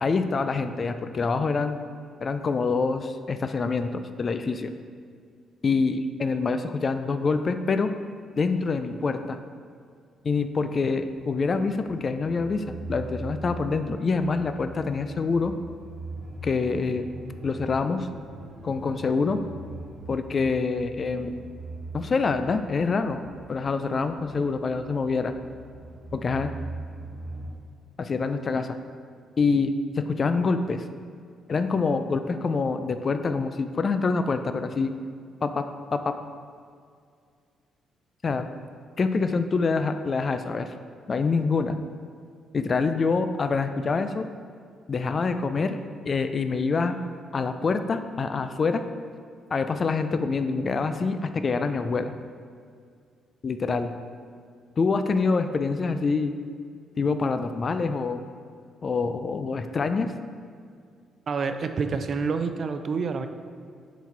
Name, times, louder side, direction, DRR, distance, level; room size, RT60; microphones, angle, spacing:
voice 1, 0.0-1.8 2.2-4.7 5.6-7.9 8.4-9.4 10.2-15.5 16.4-17.0 17.4-18.1 18.6-19.4 20.1-21.4 21.9-23.2 23.5-25.3 26.1-26.5 28.0-28.8 29.4-30.8 31.5-34.9 35.4-35.6 35.9-36.1 38.2-38.5 39.0-40.7 41.1-41.8 42.5-44.3 44.9-45.8 46.1-47.0 47.3-48.8 49.5-52.1 53.4-53.9 54.8-56.3 57.0-58.2 58.8-60.1, left 4 dB, 40° left, 9 dB, 0.4 m, -26 dB
sound 1, 10.8-27.5, right 2 dB, 70° right, 1.3 m, -41 dB
voice 2, 61.3-63.3, right 5 dB, 50° right, 8 dB, 0.5 m, -28 dB
7.0 x 4.0 x 4.6 m, 2.2 s
cardioid pair, 90°, 0 cm